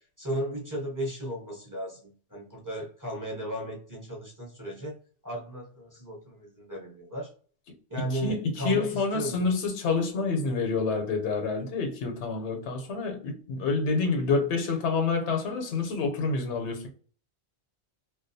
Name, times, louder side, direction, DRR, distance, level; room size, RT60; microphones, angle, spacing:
voice 1, 0.2-4.9 5.2-7.3 7.9-9.5, equal, 25° right, 0.5 m, -35 dB
voice 2, 8.0-16.9, left 4 dB, 90° left, 0.9 m, -28 dB
2.3 x 2.1 x 2.5 m
omnidirectional pair, 1.1 m